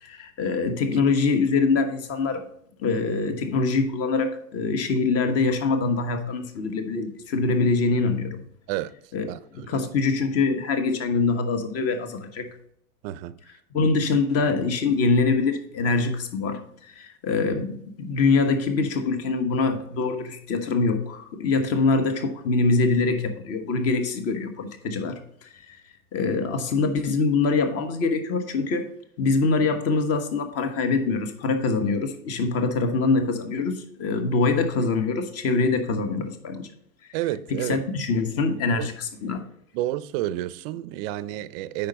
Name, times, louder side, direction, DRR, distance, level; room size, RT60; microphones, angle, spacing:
voice 1, 0.0-2.4 2.8-8.4 9.1-9.3 9.5-12.5 13.7-25.2 25.5-25.8 26.1-28.9 29.2-36.7 37.5-39.4, left 4 dB, 35° left, 1.3 m, -24 dB
voice 2, 9.3-9.8 13.0-13.4 37.1-37.8 38.7-38.9 39.7-41.9, right 14 dB, 40° right, 0.5 m, -30 dB
8.6 x 5.6 x 4.0 m
hypercardioid pair, 105°, 44 cm